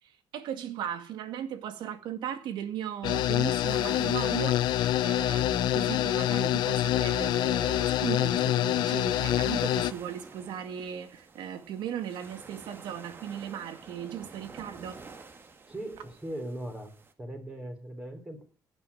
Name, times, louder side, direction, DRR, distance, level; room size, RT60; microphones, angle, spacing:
voice 1, 0.0-15.0, right 9 dB, 85° right, 2.0 m, -37 dB
sound 1, 3.0-9.9, left 13 dB, 80° left, 0.7 m, -26 dB
sound 2, 3.6-17.1, right 4 dB, 30° right, 1.7 m, -49 dB
voice 2, 15.7-16.9 17.2-18.4, right 1 dB, 15° right, 3.9 m, -39 dB
16.0 x 9.6 x 8.5 m
cardioid pair, 155°, 8 cm